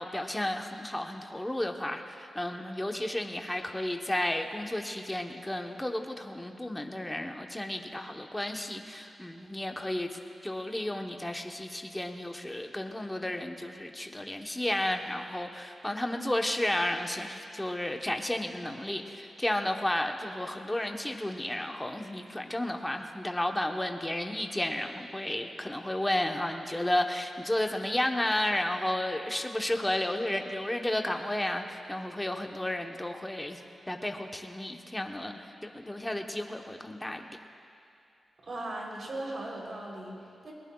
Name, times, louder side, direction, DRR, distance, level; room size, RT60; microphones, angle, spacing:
voice 1, 0.0-33.6 33.9-37.3, left 1 dB, 10° left, 3 dB, 1.0 m, -32 dB
voice 2, 38.4-40.5, right 1 dB, 55° right, -2 dB, 3.4 m, -38 dB
21.0 x 19.0 x 2.3 m, 2.6 s
cardioid pair, 90°, 0 cm